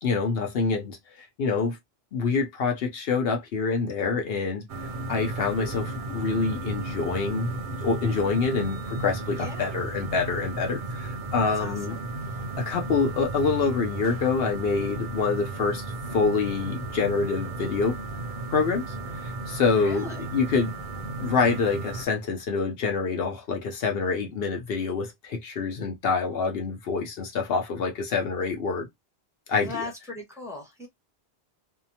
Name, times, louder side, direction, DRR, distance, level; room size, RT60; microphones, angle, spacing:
voice 1, 0.0-1.0 1.4-1.8 2.1-4.7 5.1-12.0 12.6-15.8 16.1-18.0 18.5-20.7 21.2-28.9 29.5-29.8, left 4 dB, 70° left, 0.8 m, -26 dB
sound 1, 4.7-22.1, right 2 dB, 60° right, 0.6 m, -34 dB
voice 2, 9.4-9.7 11.4-11.8 19.7-20.3 29.5-30.9, left 3 dB, 5° right, 0.9 m, -38 dB
2.7 x 2.1 x 2.7 m
omnidirectional pair, 1.1 m